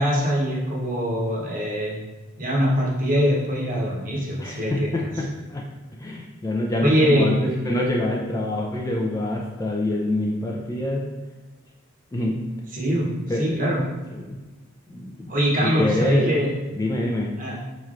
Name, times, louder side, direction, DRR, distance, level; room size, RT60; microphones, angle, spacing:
voice 1, 0.0-2.0 2.4-4.9 6.8-7.3 12.7-13.1 13.4-13.8 15.3-16.5 17.4-17.6, equal, 40° right, -4 dB, 0.9 m, -22 dB
voice 2, 4.4-5.6 6.0-11.0 12.1-12.4 13.3-13.6 14.1-14.4 14.9-15.3 15.6-16.4 16.7-17.3, left 1 dB, 15° left, -1 dB, 0.3 m, -26 dB
4.3 x 3.1 x 2.5 m, 1.2 s
head